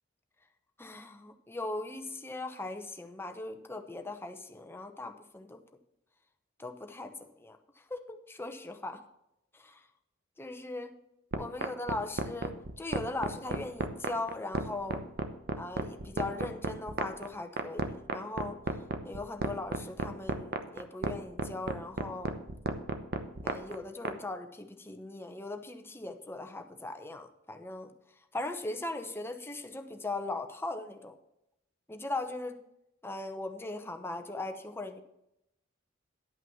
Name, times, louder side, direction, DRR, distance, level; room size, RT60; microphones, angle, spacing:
voice 1, 0.8-5.6 6.6-9.0 9.5-9.8 10.4-10.9 11.4-15.0 15.6-18.6 19.0-22.3 23.4-27.9 28.3-31.1 31.9-32.6 33.0-35.0, left 2 dB, 10° left, 5 dB, 0.8 m, -39 dB
sound 1, 11.3-24.1, right 3 dB, 50° right, 0.9 m, -32 dB
11.0 x 5.7 x 7.1 m, 0.84 s
head